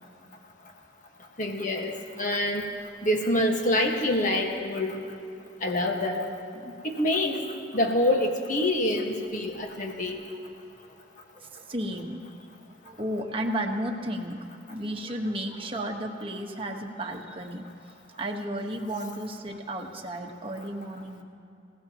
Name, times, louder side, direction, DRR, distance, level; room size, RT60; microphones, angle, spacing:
voice 1, 1.4-2.7 3.0-5.0 5.6-6.2 6.8-7.5 7.7-10.2, left 1 dB, 45° left, 2 dB, 1.6 m, -26 dB
voice 2, 11.3-12.2 12.8-14.4 14.7-17.7 18.1-21.2, right 1 dB, 30° right, 2 dB, 1.4 m, -33 dB
28.0 x 17.0 x 3.0 m, 2.7 s
head